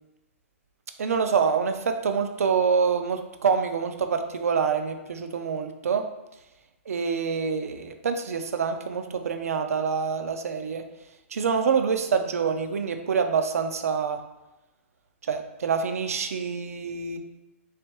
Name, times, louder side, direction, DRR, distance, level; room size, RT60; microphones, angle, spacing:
voice 1, 1.0-6.0 6.9-10.8 11.3-14.2 15.3-17.2, right 6 dB, 80° right, 7 dB, 0.4 m, -26 dB
3.3 x 3.2 x 3.0 m, 0.96 s
hypercardioid pair, 140°, 8 cm